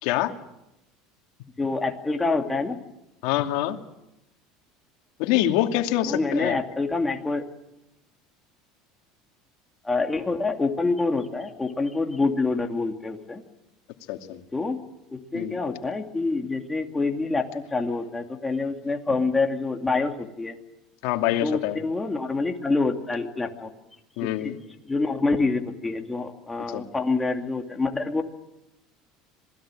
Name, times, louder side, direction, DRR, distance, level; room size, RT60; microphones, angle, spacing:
voice 1, 0.0-0.3 3.2-3.8 5.2-6.6 14.1-14.4 15.3-15.6 21.0-21.8 24.2-24.6 26.7-26.9, left 13 dB, 70° left, 5 dB, 2.5 m, -25 dB
voice 2, 1.6-2.8 6.1-7.4 9.8-13.4 14.5-14.8 15.1-20.6 21.4-23.7 24.2-24.6 24.9-28.2, left 3 dB, 10° left, 4 dB, 2.6 m, -26 dB
26.5 x 19.5 x 9.0 m, 0.89 s
cardioid pair, 140°, 0 cm